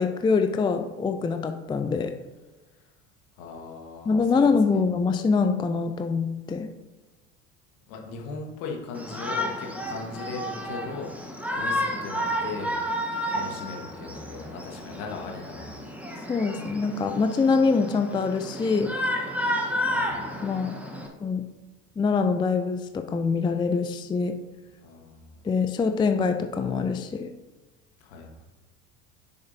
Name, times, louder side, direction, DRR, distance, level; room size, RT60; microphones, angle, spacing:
voice 1, 0.0-2.1 4.1-6.7 16.3-18.9 20.4-20.7 21.2-21.4 22.0-24.4 25.4-27.3, left 4 dB, 10° left, 8 dB, 0.4 m, -24 dB
voice 2, 3.4-4.8 7.9-12.8 13.3-15.8 19.8-20.2 24.8-25.4 28.0-28.5, left 4 dB, 65° left, 1 dB, 1.5 m, -38 dB
Shout, 8.9-21.1, equal, 5° right, 1.1 m, -31 dB
6.9 x 6.6 x 2.8 m, 1.2 s
hypercardioid pair, 70°, 40 cm